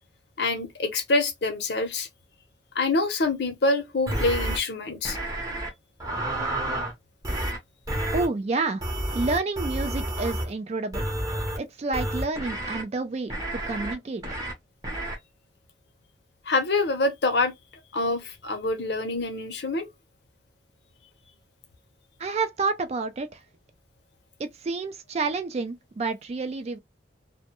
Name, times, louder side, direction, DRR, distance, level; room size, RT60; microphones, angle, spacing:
voice 1, 0.4-2.1 2.7-5.2 16.5-17.5 17.9-19.9, left 2 dB, 60° left, 0.7 m, -26 dB
sound 1, 4.1-4.6 5.1-5.7 6.0-6.9 7.2-7.6 7.9-8.3 8.8-10.5 10.9-11.6 11.9-12.8 13.3-13.9 14.2-14.5 14.8-15.2, right 1 dB, 20° right, 0.7 m, -30 dB
voice 2, 8.1-8.8 9.1-11.1 11.6-13.3 13.7-14.2 22.2-23.4 24.4-26.8, right 3 dB, 35° right, 0.3 m, -29 dB
2.2 x 2.1 x 2.8 m
head